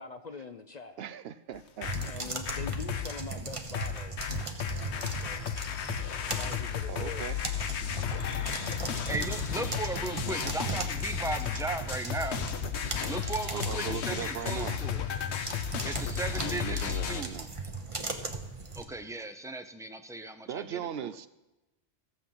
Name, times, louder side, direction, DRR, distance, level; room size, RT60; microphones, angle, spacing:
voice 1, 0.0-1.0 2.0-4.1 4.7-5.5 6.3-7.2, left 4 dB, 50° left, 8 dB, 0.6 m, -43 dB
voice 2, 1.0-2.1 6.9-7.4 13.5-14.8 16.3-17.5 20.5-21.3, right 9 dB, 70° right, 14 dB, 0.8 m, -39 dB
sound 1, 1.5-3.2 3.7-17.2, left 8 dB, 80° left, 1.1 m, -34 dB
sound 2, 1.9-18.8, right 3 dB, 30° right, 1.1 m, -38 dB
voice 3, 9.1-12.4 13.1-15.1 15.8-17.3 18.7-21.2, right 2 dB, 5° right, 8 dB, 0.5 m, -37 dB
14.5 x 7.6 x 5.6 m, 1.0 s
omnidirectional pair, 1.1 m